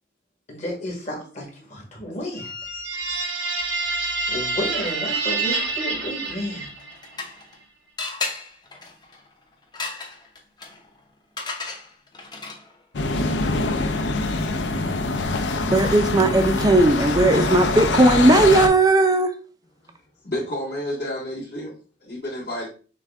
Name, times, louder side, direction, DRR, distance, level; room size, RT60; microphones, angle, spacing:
voice 1, 0.5-2.5 4.3-6.7, equal, 40° left, 1.5 m, -32 dB
sound 1, 2.3-7.1, right 3 dB, 85° right, 1.0 m, -27 dB
sound 2, 6.7-7.6 8.0-12.8, left 3 dB, 25° left, 0.7 m, -35 dB
sound 3, 12.9-18.7, left 3 dB, 90° left, 0.6 m, -24 dB
voice 2, 15.7-19.3, right 2 dB, 20° right, 0.4 m, -17 dB
voice 3, 20.2-21.7 22.0-22.7, left 1 dB, 65° left, 2.1 m, -30 dB
6.1 x 2.2 x 3.5 m
head